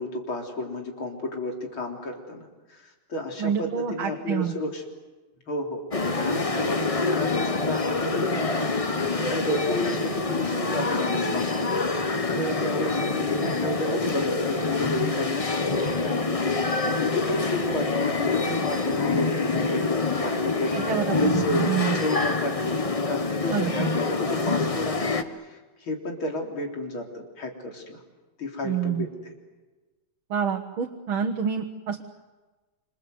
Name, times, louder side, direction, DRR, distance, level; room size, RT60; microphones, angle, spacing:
voice 1, 0.0-4.8 5.5-8.7 8.9-15.5 16.0-16.3 16.8-21.7 21.9-22.8 23.1-28.0 28.4-29.3, left 2 dB, 90° left, 1 dB, 4.5 m, -32 dB
voice 2, 3.4-4.5 20.7-22.0 23.5-23.9 28.6-29.1 30.3-32.0, right 8 dB, 85° right, 3 dB, 2.2 m, -27 dB
sound 1, 5.9-25.2, left 3 dB, 25° left, 0.9 m, -26 dB
27.0 x 27.0 x 8.0 m, 1.2 s
omnidirectional pair, 2.2 m